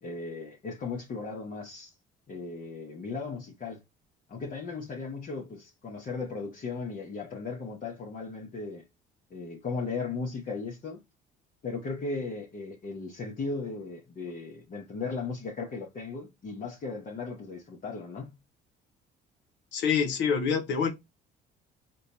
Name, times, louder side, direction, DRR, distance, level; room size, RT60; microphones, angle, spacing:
voice 1, 0.0-1.9 2.3-3.8 4.3-8.8 9.3-11.0 11.6-18.4, left 4 dB, 45° left, 1.0 m, -36 dB
voice 2, 19.7-20.9, left 6 dB, 65° left, 0.9 m, -26 dB
4.3 x 2.3 x 4.0 m
supercardioid pair, 80°, 20 cm